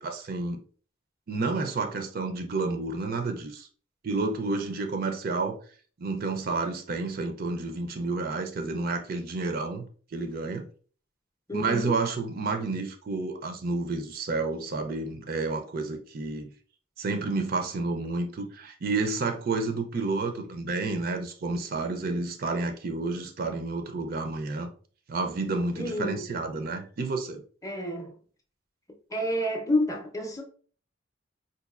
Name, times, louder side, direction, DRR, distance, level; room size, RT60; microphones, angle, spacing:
voice 1, 0.0-0.6 1.3-3.7 4.0-5.6 6.0-9.9 10.1-10.7 11.5-16.5 17.0-24.7 25.1-27.4, right 3 dB, 50° right, 0.4 m, -30 dB
voice 2, 11.5-11.9 25.8-26.2 27.6-28.1 29.1-30.4, left 1 dB, 15° left, 0.6 m, -29 dB
4.0 x 2.6 x 2.4 m
head